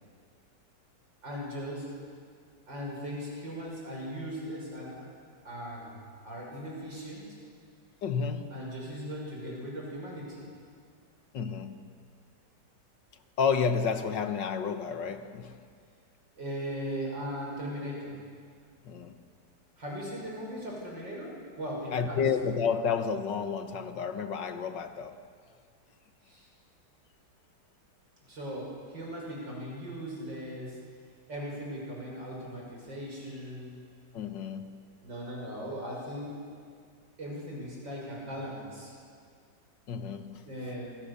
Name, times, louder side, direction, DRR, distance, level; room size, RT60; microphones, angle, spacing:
voice 1, 1.2-2.0 2.7-5.1 5.5-6.0 6.2-7.2 8.5-10.5 16.4-18.2 19.8-22.2 26.3-26.5 28.3-30.8 31.3-33.8 35.0-36.5 37.2-38.9 40.5-41.0, equal, 80° right, -2 dB, 7.0 m, -38 dB
voice 2, 8.0-8.6 11.3-11.8 13.4-15.7 18.8-19.3 21.9-25.2 34.1-34.8 39.9-40.5, left 6 dB, 75° left, 9 dB, 2.0 m, -31 dB
27.5 x 24.5 x 7.0 m, 2.1 s
omnidirectional pair, 2.0 m